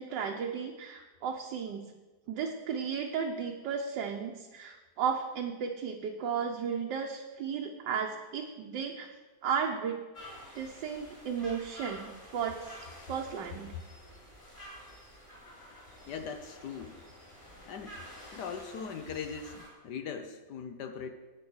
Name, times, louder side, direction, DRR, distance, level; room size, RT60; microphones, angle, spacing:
voice 1, 0.0-1.8 2.3-9.1 9.4-10.0 10.5-12.7 13.1-13.7, right 7 dB, 80° right, 1 dB, 1.5 m, -34 dB
sound 1, 10.1-19.7, equal, 25° left, 3.7 m, -50 dB
voice 2, 16.1-17.0 17.7-18.0 18.3-21.1, left 6 dB, 70° left, 7 dB, 1.3 m, -40 dB
9.5 x 8.8 x 6.3 m, 1.2 s
omnidirectional pair, 1.9 m